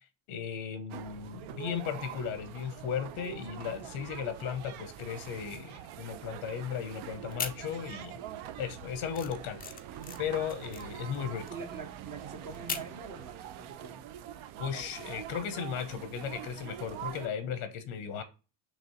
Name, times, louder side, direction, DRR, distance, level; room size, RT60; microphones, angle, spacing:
voice 1, 0.3-8.2 8.6-9.8 10.2-11.5 14.6-18.2, left 8 dB, 90° left, 0.9 m, -36 dB
sound 1, 0.9-17.3, right 10 dB, 70° right, 0.6 m, -44 dB
sound 2, 7.2-8.2 8.5-13.0, left 6 dB, 20° left, 0.3 m, -40 dB
voice 2, 11.5-14.0, right 5 dB, 40° right, 0.8 m, -44 dB
5.1 x 3.1 x 2.9 m
cardioid pair, 110°, 50 cm